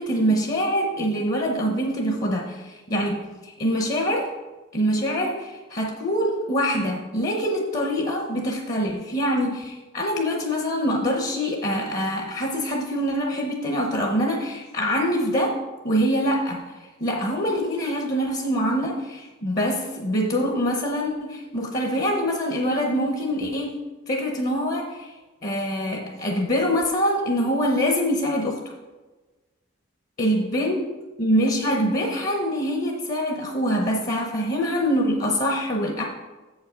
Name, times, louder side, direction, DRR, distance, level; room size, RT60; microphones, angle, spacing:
voice 1, 0.0-4.3 4.7-23.8 24.1-25.1 25.4-28.7 30.2-30.8 31.2-36.0, equal, 45° left, 1 dB, 0.9 m, -24 dB
7.3 x 5.7 x 5.0 m, 1.2 s
head